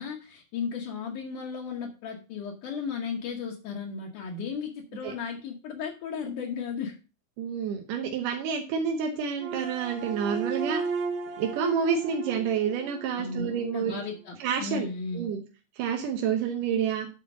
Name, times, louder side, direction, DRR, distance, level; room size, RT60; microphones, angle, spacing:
voice 1, 0.0-7.0 13.2-15.3, left 5 dB, 80° left, -2 dB, 2.7 m, -35 dB
voice 2, 7.4-10.8 11.4-14.0 14.4-14.9 15.1-15.4 15.8-17.1, right 7 dB, 85° right, 3 dB, 2.6 m, -28 dB
sound 1, 9.4-13.7, right 5 dB, 65° right, 1.3 m, -35 dB
9.7 x 4.4 x 6.0 m, 0.33 s
omnidirectional pair, 3.6 m